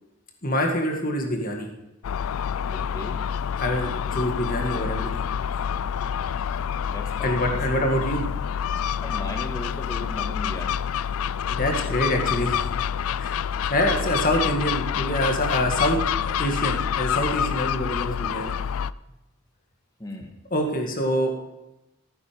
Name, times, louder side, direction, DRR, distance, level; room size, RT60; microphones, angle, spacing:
voice 1, 0.4-1.7 3.6-5.3 7.2-8.2 11.5-12.6 13.2-13.3 13.7-16.0 16.3-18.5 20.5-21.4, equal, 40° left, 2 dB, 2.0 m, -25 dB
Gull seagull, 2.0-18.9, left 8 dB, 75° left, 0.4 m, -27 dB
voice 2, 2.7-3.2 6.9-7.6 9.0-10.8 20.0-20.3, left 1 dB, 15° left, 2 dB, 1.7 m, -37 dB
15.5 x 9.7 x 5.2 m, 0.95 s
head